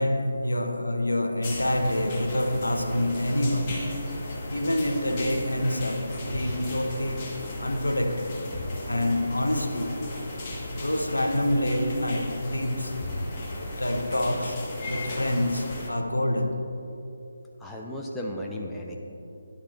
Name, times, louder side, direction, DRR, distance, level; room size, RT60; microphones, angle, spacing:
voice 1, 0.0-3.8 4.5-7.3 7.6-8.4 8.9-10.5 10.7-13.0 13.8-16.7, left 1 dB, 75° left, 0.9 m, -27 dB
sound 1, 1.4-15.9, left 1 dB, 30° left, 1.7 m, -35 dB
voice 2, 17.6-19.0, left 1 dB, 5° left, 0.8 m, -34 dB
16.5 x 10.0 x 2.6 m
figure-of-eight pair, 145°, 0 cm